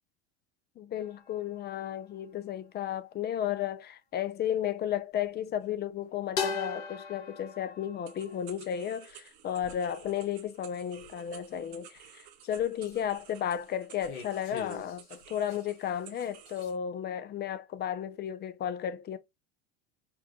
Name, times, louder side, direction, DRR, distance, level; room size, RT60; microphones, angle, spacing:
voice 1, 0.8-19.2, left 10 dB, 30° left, 0.6 m, -33 dB
sound 1, 1.0-2.1 5.2-5.6 6.4-8.8 9.6-10.1 11.0-12.1 12.6-13.5 14.0-15.6 15.9-16.7, left 5 dB, 70° left, 1.6 m, -40 dB
sound 2, 8.0-16.8, right 10 dB, 80° right, 0.9 m, -54 dB
4.6 x 2.5 x 2.9 m
hypercardioid pair, 90°, 32 cm